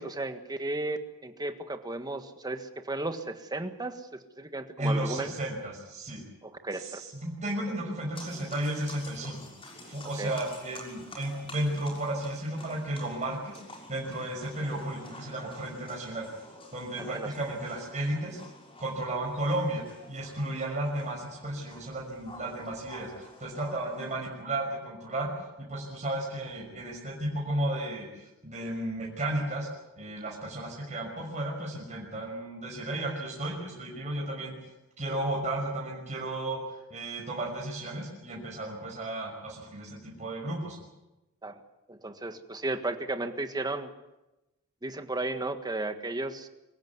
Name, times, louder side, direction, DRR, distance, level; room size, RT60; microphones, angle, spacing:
voice 1, 0.0-5.3 6.6-7.0 10.2-10.3 17.0-17.3 41.4-41.6 41.9-43.9 44.8-46.5, right 2 dB, 20° right, 8 dB, 1.6 m, -34 dB
voice 2, 4.8-6.2 6.7-9.4 9.7-13.6 13.9-16.3 16.7-18.4 18.8-25.3 25.6-29.7 30.0-34.6 35.0-40.8, right 1 dB, 35° right, -2 dB, 5.9 m, -33 dB
sound 1, 8.1-24.2, left 1 dB, 25° left, 6.3 m, -49 dB
24.5 x 15.5 x 9.6 m, 1.0 s
head